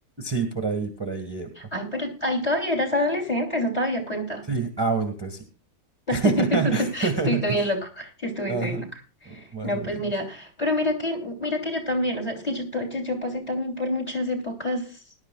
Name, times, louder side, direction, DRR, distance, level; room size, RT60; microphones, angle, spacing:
voice 1, 0.2-1.5 4.5-5.4 6.1-7.6 8.5-8.8 9.2-10.1, right 4 dB, 15° right, 5 dB, 1.5 m, -27 dB
voice 2, 1.6-4.4 6.1-8.9 9.2-14.9, left 1 dB, 20° left, 4 dB, 3.4 m, -27 dB
20.0 x 11.5 x 2.4 m, 0.34 s
omnidirectional pair, 1.8 m